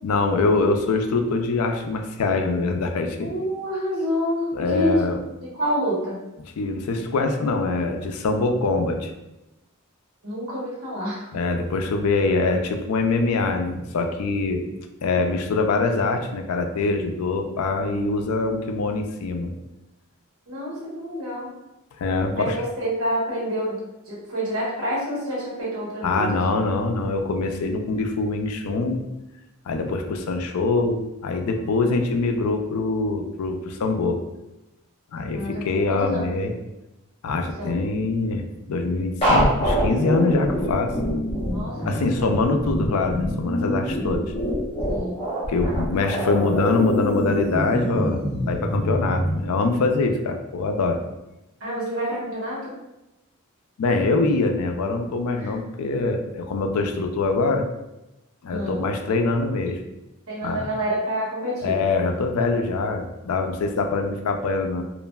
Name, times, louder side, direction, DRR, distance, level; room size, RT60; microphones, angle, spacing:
voice 1, 0.0-3.3 4.5-5.2 6.6-9.1 11.3-14.6 15.0-19.5 22.0-22.6 26.0-29.0 29.7-34.2 35.1-36.5 37.2-38.4 38.7-40.9 41.9-44.3 45.5-51.0 53.8-57.6 58.4-59.8 60.4-60.7 61.6-64.8, left 3 dB, 90° left, 5 dB, 0.4 m, -24 dB
voice 2, 3.2-5.0 5.4-6.2 10.2-11.3 20.5-21.5 22.3-26.2 35.3-36.3 37.6-37.8 41.5-42.3 44.9-45.2 45.9-46.3 51.6-52.7 55.4-55.5 58.5-58.8 60.3-61.8, equal, 70° right, -5 dB, 1.1 m, -28 dB
sound 1, 39.2-49.4, equal, 25° left, 0.9 m, -25 dB
3.0 x 2.5 x 2.2 m, 0.95 s
head